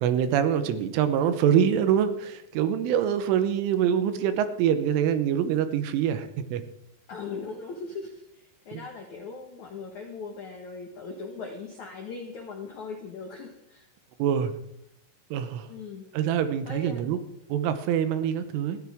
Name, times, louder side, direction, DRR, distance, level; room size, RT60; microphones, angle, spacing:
voice 1, 0.0-6.6 8.7-8.8 14.2-14.5 15.3-15.7 16.1-17.2 17.5-18.8, right 9 dB, 80° right, 10 dB, 3.4 m, -25 dB
voice 2, 0.6-1.0 7.1-13.9 15.7-16.1 16.6-17.1, left 4 dB, 85° left, 3 dB, 1.6 m, -39 dB
20.0 x 14.5 x 3.6 m, 0.82 s
omnidirectional pair, 5.7 m